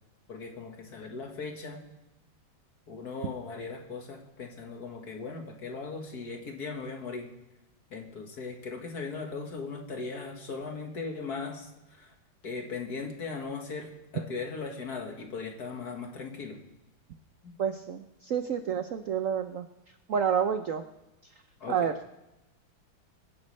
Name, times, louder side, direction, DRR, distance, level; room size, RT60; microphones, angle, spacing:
voice 1, 0.3-1.8 2.9-7.3 7.9-12.1 12.4-16.6 17.4-17.6 21.6-21.9, left 4 dB, 50° left, 3 dB, 2.0 m, -38 dB
voice 2, 17.6-19.7 20.1-20.8 21.7-21.9, right 7 dB, 80° right, 9 dB, 0.7 m, -29 dB
25.0 x 10.5 x 3.2 m, 0.98 s
omnidirectional pair, 2.2 m